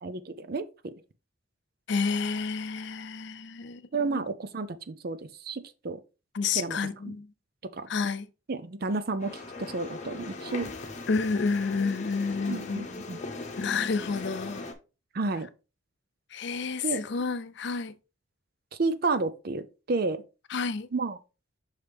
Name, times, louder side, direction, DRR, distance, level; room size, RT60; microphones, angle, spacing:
voice 1, 0.0-0.9 3.9-5.2 5.4-6.0 6.5-6.8 7.1-7.2 7.8-7.9 8.5-10.7 12.5-13.2 15.1-15.5 16.8-17.0 18.8-20.2 20.9-21.2, right 3 dB, 50° right, 0.5 m, -31 dB
voice 2, 1.9-4.2 6.3-7.3 7.9-8.3 11.1-12.9 13.6-14.7 16.3-17.9 20.5-20.9, left 4 dB, 60° left, 0.5 m, -30 dB
sound 1, 9.2-14.7, left 3 dB, 35° left, 0.9 m, -39 dB
5.7 x 4.9 x 3.4 m
head